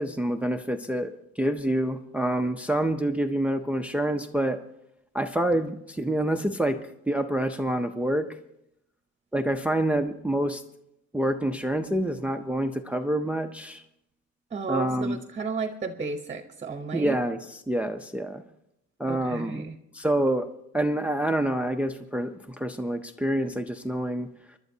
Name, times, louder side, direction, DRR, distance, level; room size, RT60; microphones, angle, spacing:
voice 1, 0.0-4.6 5.1-6.8 7.1-8.3 9.3-10.6 11.1-13.8 14.7-15.2 16.9-18.4 19.0-19.7 19.9-20.5 20.7-24.3, right 1 dB, 5° right, 8 dB, 0.5 m, -27 dB
voice 2, 14.5-17.2 19.1-19.8, right 4 dB, 25° right, 7 dB, 0.9 m, -33 dB
25.0 x 12.0 x 2.7 m, 0.79 s
cardioid pair, 140°, 30 cm